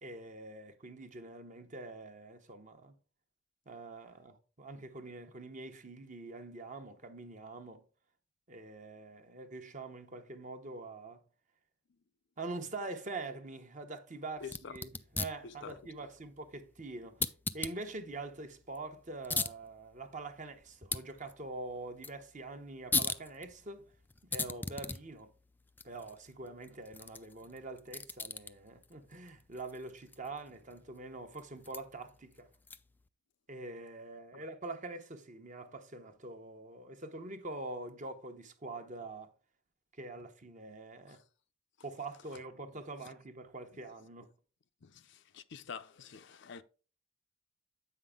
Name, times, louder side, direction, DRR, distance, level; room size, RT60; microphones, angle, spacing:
voice 1, 0.0-3.0 3.7-7.8 8.5-11.2 12.4-23.9 24.3-25.3 25.8-32.5 33.5-39.3 40.0-41.2 41.8-44.3, right 2 dB, 40° right, 1.0 m, -45 dB
voice 2, 14.4-14.7 15.4-15.8 34.3-34.4 41.1-41.2 44.8-46.6, left 6 dB, 60° left, 0.6 m, -47 dB
sound 1, 14.4-33.1, left 4 dB, 10° left, 0.3 m, -41 dB
7.9 x 5.7 x 3.6 m
head